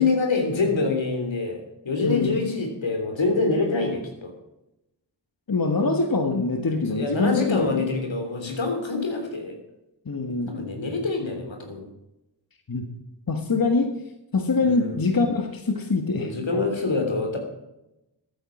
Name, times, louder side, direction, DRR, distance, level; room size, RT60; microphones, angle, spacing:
voice 1, 0.0-4.3 6.9-9.6 10.5-11.9 14.6-15.0 16.1-17.4, left 3 dB, 85° left, 4 dB, 3.3 m, -25 dB
voice 2, 2.0-2.5 5.5-7.8 10.0-10.5 12.7-12.8 13.3-13.9 14.3-16.3, left 3 dB, 50° left, 5 dB, 1.7 m, -24 dB
14.0 x 9.2 x 6.0 m, 0.91 s
cardioid pair, 40°, 44 cm